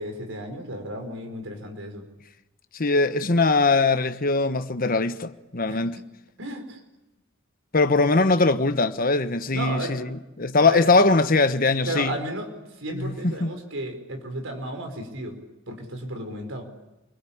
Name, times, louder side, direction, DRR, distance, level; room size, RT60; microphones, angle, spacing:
voice 1, 0.0-2.1 5.7-5.9 6.4-6.8 9.5-10.0 10.6-10.9 11.9-12.5 12.8-15.4 15.7-16.7, right 1 dB, 80° right, 4.9 m, -33 dB
voice 2, 2.7-6.0 7.7-12.1 12.9-13.1 13.4-13.5, left 3 dB, 45° left, 1.2 m, -21 dB
28.5 x 22.0 x 8.8 m
head